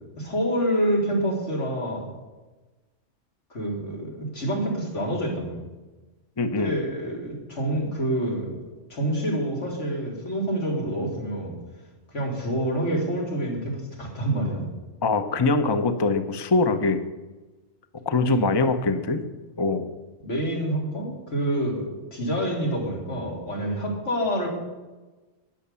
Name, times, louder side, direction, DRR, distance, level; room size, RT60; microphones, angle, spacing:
voice 1, 0.2-2.1 3.5-5.6 6.6-8.5 8.9-11.6 12.1-14.7 18.2-18.4 20.2-24.5, right 1 dB, 85° left, -2 dB, 4.0 m, -27 dB
voice 2, 6.4-6.8 15.0-17.0 18.1-19.2 19.6-19.9, left 3 dB, 25° left, 8 dB, 0.8 m, -23 dB
13.0 x 9.8 x 7.0 m, 1.2 s
omnidirectional pair, 1.2 m